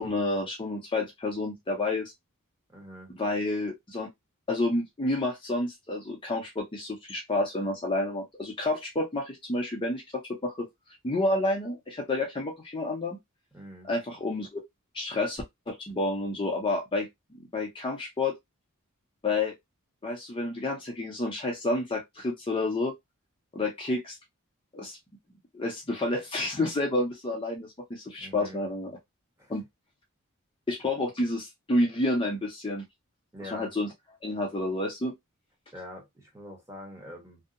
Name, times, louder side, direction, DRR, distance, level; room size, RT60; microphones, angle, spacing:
voice 1, 0.0-2.1 3.2-4.1 4.5-10.7 11.0-13.2 13.8-14.6 14.9-17.1 17.5-18.3 19.2-19.5 20.0-22.9 23.5-24.2 24.7-25.0 25.5-29.0 29.5-29.6 30.7-32.8 33.5-33.9 34.2-35.1, left 2 dB, 25° left, 0.6 m, -29 dB
voice 2, 2.7-3.1 13.5-13.9 28.2-28.7 29.4-29.5 33.3-33.7 35.7-37.4, left 1 dB, 15° right, 1.0 m, -44 dB
2.7 x 2.1 x 2.4 m
head